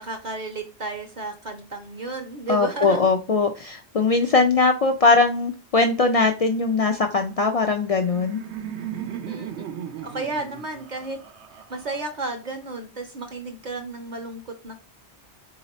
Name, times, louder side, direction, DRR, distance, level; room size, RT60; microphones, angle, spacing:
voice 1, 0.0-3.1 9.3-9.5 10.0-11.2 11.7-14.8, right 3 dB, 50° right, 4 dB, 0.7 m, -32 dB
voice 2, 2.5-8.4, left 3 dB, 65° left, 4 dB, 0.3 m, -20 dB
Laughter, 7.8-12.6, right 9 dB, 80° right, 0.9 m, -37 dB
3.9 x 2.9 x 4.0 m, 0.32 s
omnidirectional pair, 1.1 m